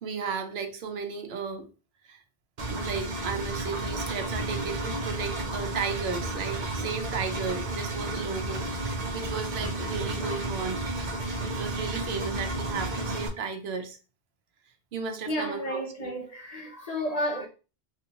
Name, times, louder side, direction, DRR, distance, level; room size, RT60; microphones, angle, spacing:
voice 1, 0.0-1.7 2.0-2.2 2.7-10.9 11.4-14.0 14.9-16.1, right 5 dB, 80° right, 0.9 m, -34 dB
Engine, 2.6-13.3, right 2 dB, 50° right, 0.7 m, -32 dB
voice 2, 15.3-17.5, equal, 45° left, 0.7 m, -32 dB
3.4 x 2.6 x 2.8 m
omnidirectional pair, 1.0 m